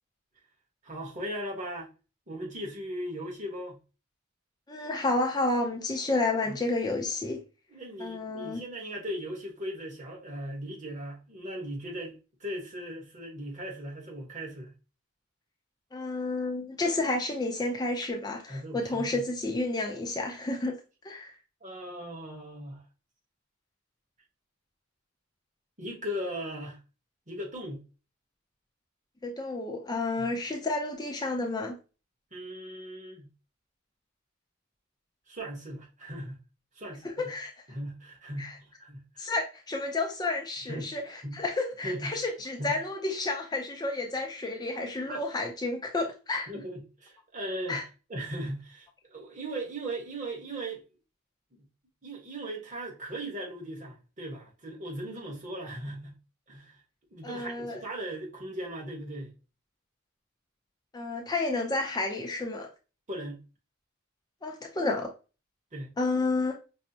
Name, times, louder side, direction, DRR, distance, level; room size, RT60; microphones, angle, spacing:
voice 1, 0.8-1.9 2.3-3.8 6.4-6.6 7.7-12.1 12.4-14.7 18.5-19.2 21.6-22.8 25.8-26.8 27.3-27.8 30.2-30.3 32.3-33.3 35.3-36.4 36.7-37.3 37.7-39.3 40.7-40.9 41.2-41.4 41.8-42.1 42.6-42.8 45.1-45.2 46.5-47.8 48.1-50.8 52.0-56.2 56.5-56.8 57.1-59.3 63.1-63.4 65.7-65.9, right 1 dB, 35° right, 1.2 m, -38 dB
voice 2, 4.7-7.4 8.0-8.6 15.9-20.8 21.0-21.3 29.2-31.8 37.0-37.5 38.4-38.6 39.2-46.5 47.7-47.8 57.2-57.8 60.9-62.7 64.4-65.1 66.0-66.6, left 2 dB, 20° left, 0.4 m, -31 dB
5.3 x 2.0 x 2.7 m
head